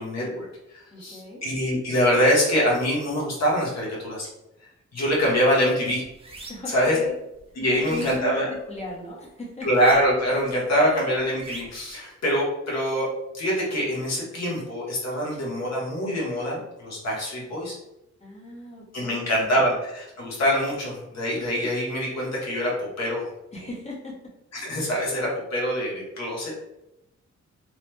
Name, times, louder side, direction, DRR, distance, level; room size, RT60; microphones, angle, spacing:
voice 1, 0.0-4.3 4.9-6.0 6.7-7.0 7.6-8.5 9.6-13.1 13.3-17.8 18.9-23.3 23.6-23.7 24.5-26.6, equal, 60° left, -4 dB, 1.1 m, -24 dB
voice 2, 0.9-1.4 6.5-7.1 7.6-9.7 18.2-19.6 23.5-24.1, left 2 dB, 20° left, -3 dB, 0.8 m, -37 dB
sound 1, 5.1-5.3 5.7-6.8 7.3-9.0 9.6-10.4 10.6-11.9, right 3 dB, 20° right, 0.4 m, -43 dB
3.1 x 2.1 x 3.1 m, 0.88 s
wide cardioid pair, 150°, 30 cm